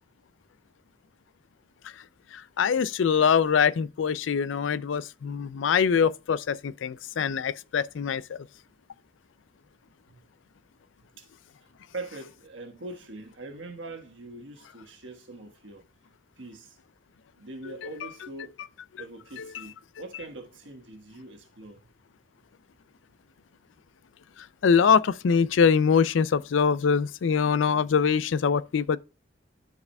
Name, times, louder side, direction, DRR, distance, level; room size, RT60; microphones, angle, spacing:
voice 1, 2.3-8.5 17.8-17.9 24.4-29.0, left 6 dB, 80° left, 0.4 m, -23 dB
voice 2, 11.6-15.9 16.4-16.8 17.3-18.6 19.0-21.8, right 2 dB, 80° right, 1.4 m, -42 dB
13.0 x 4.8 x 2.3 m
head